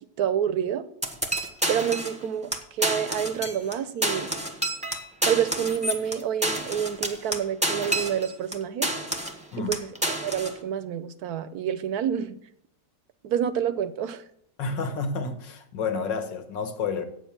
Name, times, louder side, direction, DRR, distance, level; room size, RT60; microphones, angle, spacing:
voice 1, 0.2-0.8 1.7-4.3 5.3-8.9 9.7-9.9 10.2-12.3 13.2-14.2, right 9 dB, 65° right, 1.2 m, -28 dB
sound 1, 1.0-2.2 2.5-2.6 2.8-3.7 4.0-8.5 8.8-9.4 9.7-10.5, right 1 dB, 5° right, 1.1 m, -29 dB
voice 2, 14.6-17.1, left 4 dB, 85° left, 2.0 m, -30 dB
8.9 x 7.3 x 7.3 m
omnidirectional pair, 1.9 m